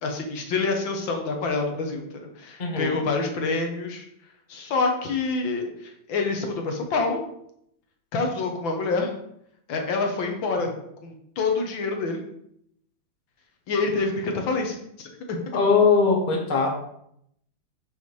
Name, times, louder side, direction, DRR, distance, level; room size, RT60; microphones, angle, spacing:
voice 1, 0.0-4.1 4.5-7.2 8.1-9.1 9.7-10.7 11.0-12.2 13.7-15.4, left 3 dB, 75° left, 3 dB, 1.9 m, -27 dB
voice 2, 2.6-3.0 15.5-16.7, left 5 dB, 30° left, 0 dB, 1.2 m, -20 dB
6.1 x 5.6 x 4.7 m, 0.73 s
omnidirectional pair, 2.1 m